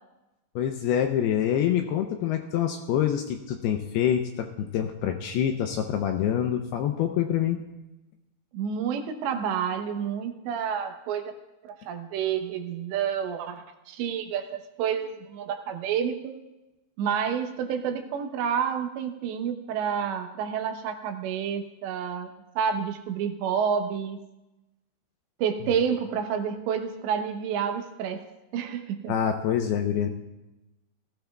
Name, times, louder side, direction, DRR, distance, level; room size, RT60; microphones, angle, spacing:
voice 1, 0.6-7.6 29.1-30.1, left 9 dB, 80° left, 5 dB, 2.4 m, -26 dB
voice 2, 8.5-11.4 11.6-16.4 17.0-22.3 22.6-24.2 25.4-28.2 28.5-29.1, right 7 dB, 80° right, 6 dB, 3.1 m, -29 dB
20.5 x 15.5 x 2.3 m, 0.98 s
omnidirectional pair, 5.2 m